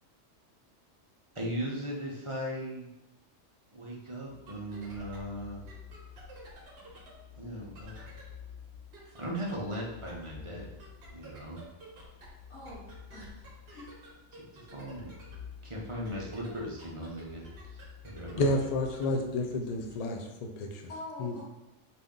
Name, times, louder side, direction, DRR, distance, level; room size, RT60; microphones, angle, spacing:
voice 1, 1.3-2.9 3.7-5.6 7.4-8.1 9.1-10.8 11.1-11.6 14.3-14.4 14.7-15.1 15.6-18.4, equal, 35° right, -4 dB, 0.6 m, -38 dB
sound 1, 4.2-19.9, left 4 dB, 55° right, 1.1 m, -49 dB
voice 2, 12.5-12.8 13.1-13.9 20.9-21.4, left 1 dB, 85° left, -9 dB, 1.4 m, -45 dB
voice 3, 18.4-20.8 21.2-21.4, left 2 dB, 65° left, 3 dB, 0.3 m, -30 dB
4.2 x 2.6 x 3.6 m, 0.95 s
omnidirectional pair, 1.3 m